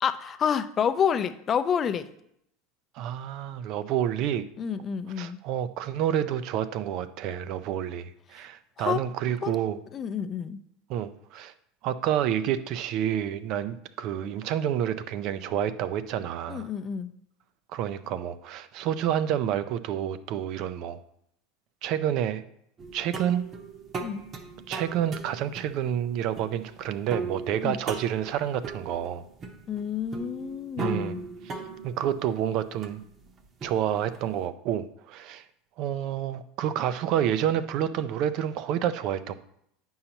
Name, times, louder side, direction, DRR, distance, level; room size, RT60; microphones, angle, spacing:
voice 1, 0.0-2.1 4.6-5.4 8.8-9.0 9.4-10.6 16.5-17.1 24.0-24.2 27.6-27.8 29.7-31.2, left 7 dB, 35° left, 10 dB, 0.5 m, -29 dB
voice 2, 3.0-4.4 5.2-9.8 10.9-11.5 11.8-16.7 17.7-21.0 21.8-22.4 22.9-23.4 24.7-29.2 30.8-31.2 31.4-31.5 31.8-33.0 33.6-35.4 35.8-39.3, right 10 dB, 55° right, 13 dB, 0.4 m, -29 dB
sound 1, 22.8-34.3, right 4 dB, 35° right, 0.8 m, -39 dB
8.6 x 5.5 x 2.9 m, 0.73 s
supercardioid pair, 105°, 0 cm